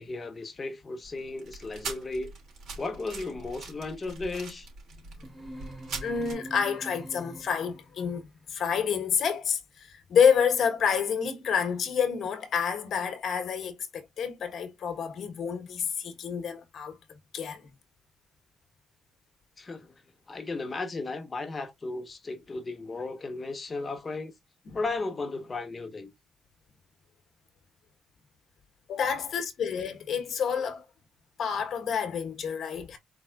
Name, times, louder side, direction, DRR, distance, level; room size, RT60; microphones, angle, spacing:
voice 1, 0.0-2.3 2.8-4.7 19.6-19.9 20.3-24.3 24.7-26.1, left 3 dB, 30° left, 1.3 m, -35 dB
sound 1, 1.0-6.3, right 4 dB, 65° right, 3.0 m, -42 dB
sound 2, 5.2-7.9, right 1 dB, 10° right, 1.6 m, -44 dB
voice 2, 6.0-17.0 17.3-17.7 24.7-24.8 28.9-30.8 31.4-33.0, left 7 dB, 60° left, 1.3 m, -28 dB
4.5 x 4.0 x 2.5 m
cardioid pair, 90°, 0 cm